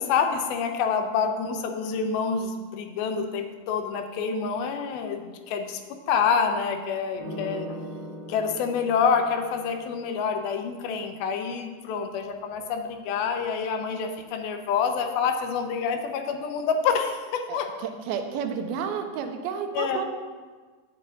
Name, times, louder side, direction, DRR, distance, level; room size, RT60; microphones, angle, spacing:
voice 1, 0.0-5.8 6.1-7.7 8.3-17.7 19.7-20.1, left 6 dB, 80° left, 5 dB, 2.5 m, -27 dB
sound 1, 7.2-10.3 12.0-13.7, equal, 40° right, 2.1 m, -41 dB
voice 2, 17.5-20.1, right 7 dB, 85° right, 6 dB, 2.5 m, -31 dB
8.6 x 7.7 x 3.8 m, 1.4 s
omnidirectional pair, 4.3 m